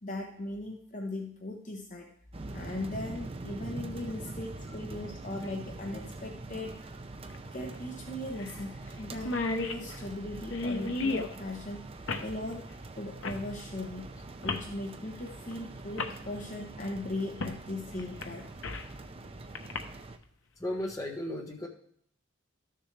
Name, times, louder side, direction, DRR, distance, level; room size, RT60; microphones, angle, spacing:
voice 1, 0.0-2.1 2.5-6.8 7.5-11.9 12.2-12.7 13.0-14.1 14.4-18.5, left 1 dB, 35° left, 1 dB, 0.9 m, -38 dB
sound 1, 2.3-20.2, right 2 dB, 25° right, 0.5 m, -44 dB
sound 2, 5.4-5.5 7.3-7.4 7.7-7.8 8.4-8.6 8.9-9.0 9.1-11.3 12.1-12.3 13.2-13.4 14.4-14.7 15.5-15.6 16.0-16.2 17.4-17.6 18.0-18.9 19.6-19.8, left 3 dB, 65° left, 0.8 m, -33 dB
voice 2, 20.6-21.7, left 1 dB, 15° left, 0 dB, 1.2 m, -35 dB
12.5 x 6.8 x 3.3 m, 0.63 s
head